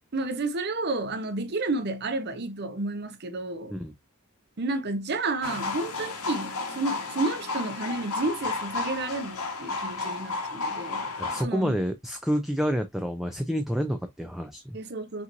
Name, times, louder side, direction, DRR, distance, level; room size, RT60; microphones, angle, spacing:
voice 1, 0.1-3.7 4.6-11.0 11.4-11.8 14.7-15.2, right 2 dB, 50° right, 0.7 m, -31 dB
sound 1, 5.4-11.4, left 3 dB, 90° left, 1.4 m, -32 dB
voice 2, 11.2-14.8, equal, ahead, 0.4 m, -29 dB
5.6 x 3.0 x 2.5 m
head